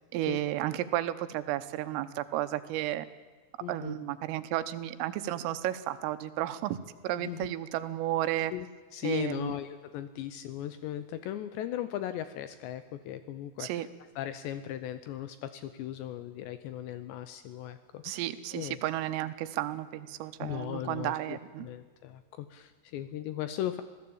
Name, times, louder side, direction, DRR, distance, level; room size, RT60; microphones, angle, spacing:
voice 1, 0.1-3.1 3.7-6.8 7.0-8.5 9.0-9.5 13.6-13.9 18.0-21.7, right 14 dB, 85° right, 12 dB, 3.6 m, -33 dB
voice 2, 3.6-4.0 7.2-7.5 8.5-13.9 14.2-18.2 18.5-18.8 20.4-23.8, left 11 dB, 75° left, 11 dB, 2.7 m, -38 dB
26.5 x 16.5 x 8.7 m, 1.4 s
omnidirectional pair, 5.8 m